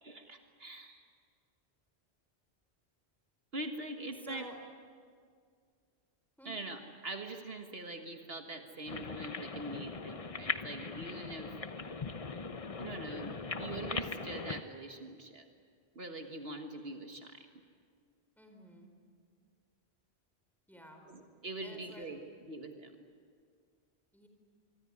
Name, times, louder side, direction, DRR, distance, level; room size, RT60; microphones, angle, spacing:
voice 1, 0.0-1.0 3.5-4.6 6.5-11.6 12.8-15.5 16.0-17.5 21.0-22.2 22.5-23.0, right 2 dB, 65° right, 4 dB, 1.8 m, -43 dB
voice 2, 4.2-4.6 6.4-6.5 18.4-18.9 20.7-21.1 21.6-22.1 24.1-24.3, equal, ahead, 3 dB, 4.5 m, -52 dB
sound 1, 8.9-14.6, left 4 dB, 35° left, 0.9 m, -40 dB
25.5 x 24.0 x 9.8 m, 2.1 s
omnidirectional pair, 1.1 m